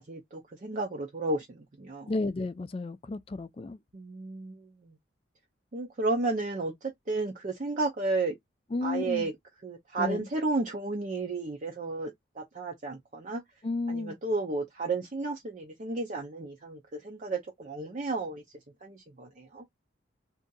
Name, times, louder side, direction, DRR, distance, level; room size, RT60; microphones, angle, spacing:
voice 1, 0.0-2.1 3.9-5.0 5.7-8.4 8.8-9.3 9.6-13.4 13.9-18.4 18.8-19.7, right 3 dB, 40° right, 0.5 m, -33 dB
voice 2, 2.1-3.8 8.7-9.3 10.0-10.2 13.6-14.2, left 3 dB, 30° left, 0.3 m, -32 dB
2.7 x 2.4 x 3.7 m
head